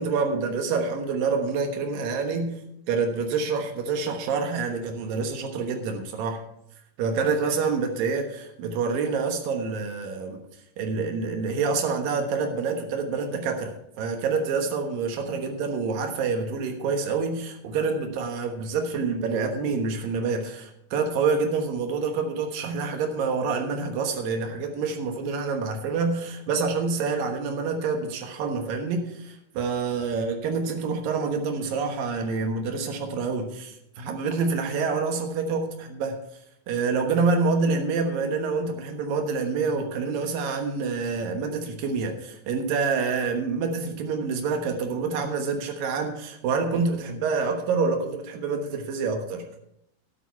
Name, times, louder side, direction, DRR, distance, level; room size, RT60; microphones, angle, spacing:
voice 1, 0.0-2.5 2.9-6.4 7.0-10.4 10.8-36.2 36.7-49.4, right 4 dB, 70° right, 4 dB, 2.1 m, -27 dB
12.5 x 10.0 x 4.6 m, 0.78 s
omnidirectional pair, 5.8 m